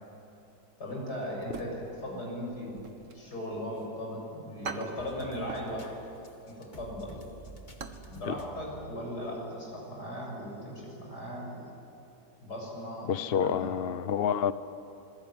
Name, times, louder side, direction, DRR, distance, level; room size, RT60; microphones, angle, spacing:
voice 1, 0.8-6.0 6.5-7.2 8.1-11.7 12.4-13.7, equal, 85° left, -1 dB, 7.7 m, -38 dB
sound 1, 1.4-2.2 2.5-3.9 4.2-4.3 4.6-5.8 6.1-6.3 6.7-8.1 8.4-8.5 9.0-9.2 9.5-9.6, right 4 dB, 50° right, 1.7 m, -43 dB
sound 2, 5.0-9.7 10.1-10.2 11.2-11.3, left 1 dB, 30° left, 1.8 m, -51 dB
voice 2, 13.1-14.5, left 8 dB, 50° left, 14 dB, 0.8 m, -28 dB
27.0 x 21.0 x 9.5 m, 2.9 s
omnidirectional pair, 1.7 m